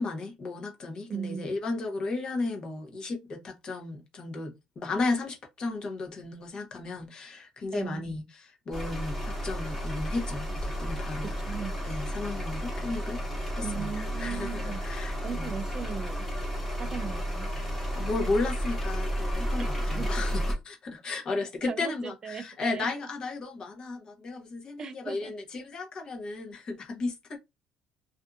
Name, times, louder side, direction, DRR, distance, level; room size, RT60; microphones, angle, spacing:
voice 1, 0.0-11.5 11.8-13.2 13.5-15.6 17.6-27.4, left 3 dB, 40° left, 0.9 m, -34 dB
voice 2, 1.1-1.5 7.7-8.1 11.4-11.7 13.6-14.9 15.2-16.3 16.8-17.5 19.6-20.4 21.6-22.9 24.8-25.3, right 7 dB, 30° right, 0.4 m, -38 dB
sound 1, 8.7-20.5, equal, 5° left, 1.2 m, -32 dB
2.6 x 2.5 x 2.3 m
cardioid pair, 145°, 2 cm